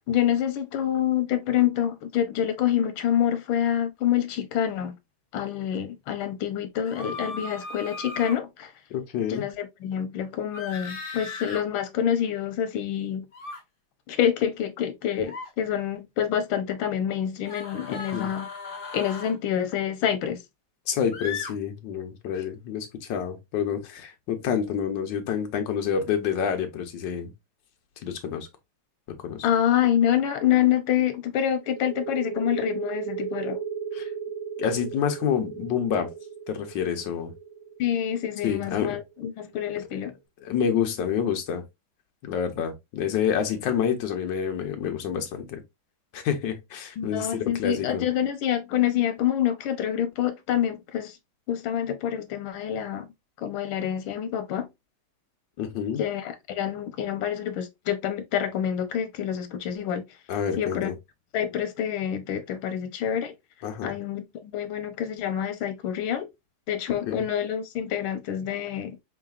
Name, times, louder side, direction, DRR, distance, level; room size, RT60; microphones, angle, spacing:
voice 1, 0.0-5.0 5.3-8.7 9.3-13.3 14.1-18.5 18.9-20.4 29.4-33.6 37.8-40.1 47.0-51.2 51.5-53.1 53.4-54.7 56.0-60.1 60.6-60.9 61.3-63.3 63.8-66.3 66.7-69.0, left 10 dB, 90° left, 1.5 m, -27 dB
sound 1, 6.8-8.4 10.5-11.6 13.3-13.6 15.2-15.5 17.4-19.4 21.1-21.5, left 4 dB, 40° left, 0.7 m, -37 dB
voice 2, 8.9-9.4 18.1-18.3 20.9-27.3 28.0-28.5 29.2-29.5 33.9-34.1 34.6-36.1 36.5-37.3 38.4-39.0 40.4-41.6 42.2-45.6 46.1-48.0 55.6-56.0 60.3-60.9 63.6-63.9 67.1-67.2, left 8 dB, 65° left, 1.5 m, -28 dB
sound 2, 31.7-39.1, right 7 dB, 80° right, 1.7 m, -35 dB
4.0 x 3.8 x 2.4 m
omnidirectional pair, 2.2 m